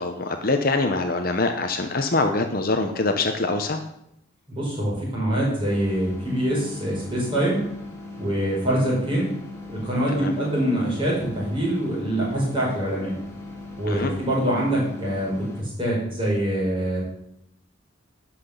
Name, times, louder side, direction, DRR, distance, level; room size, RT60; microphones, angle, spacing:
voice 1, 0.0-3.8 10.1-10.3 13.9-14.1, left 3 dB, 45° left, 6 dB, 0.9 m, -24 dB
voice 2, 4.5-7.6 8.2-9.3 9.7-13.1 13.8-17.0, right 1 dB, 25° right, -5 dB, 5.2 m, -24 dB
sound 1, 5.6-15.6, left 2 dB, 15° left, 1.9 m, -39 dB
12.0 x 6.0 x 6.8 m, 0.76 s
head